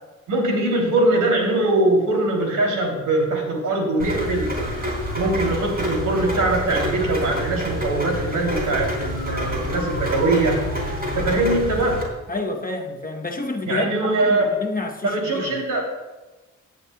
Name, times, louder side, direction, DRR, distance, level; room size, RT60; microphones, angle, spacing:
voice 1, 0.3-4.6 5.2-10.6 11.1-12.0 13.7-14.5 15.0-15.8, right 2 dB, 80° right, 0 dB, 2.9 m, -22 dB
Rain, 4.0-12.0, equal, 30° right, 3.6 m, -27 dB
voice 2, 12.3-15.6, left 3 dB, 30° left, 3 dB, 0.9 m, -29 dB
16.5 x 9.6 x 2.3 m, 1.1 s
cardioid pair, 90°, 31 cm